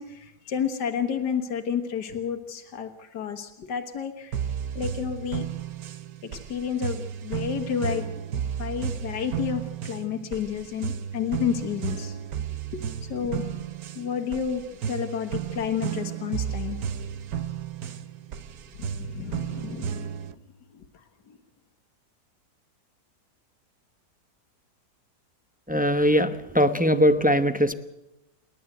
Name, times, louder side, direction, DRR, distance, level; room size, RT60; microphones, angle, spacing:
voice 1, 0.0-4.4 4.8-5.5 6.2-8.1 8.6-12.2 12.7-13.6 14.0-14.6 14.9-16.8 18.8-20.1 20.7-21.4, left 8 dB, 90° left, 6 dB, 1.9 m, -31 dB
sound 1, 4.3-20.3, right 8 dB, 65° right, 1.3 m, -33 dB
voice 2, 25.7-27.7, equal, 10° right, 9 dB, 0.3 m, -21 dB
28.5 x 12.0 x 7.9 m, 0.94 s
omnidirectional pair, 1.8 m